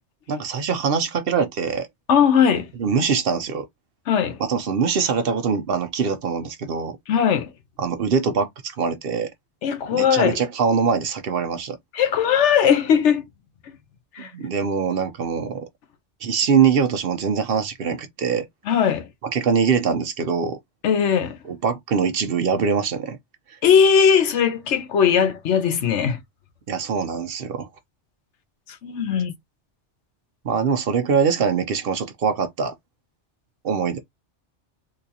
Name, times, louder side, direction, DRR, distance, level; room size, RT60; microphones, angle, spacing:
voice 1, 0.3-1.9 2.8-3.7 4.4-7.0 7.8-9.3 9.9-11.8 14.2-15.7 16.2-18.5 19.2-20.6 21.4-23.2 23.5-23.6 26.7-27.7 30.4-32.7 33.6-34.0, right 6 dB, 60° right, 0.8 m, -23 dB
voice 2, 2.1-2.7 4.1-4.4 7.1-7.5 9.6-10.4 11.9-13.2 14.1-14.3 18.7-19.1 20.8-21.4 23.6-26.2 28.8-29.3, left 7 dB, 80° left, 1.0 m, -19 dB
3.8 x 2.5 x 2.7 m
omnidirectional pair, 1.2 m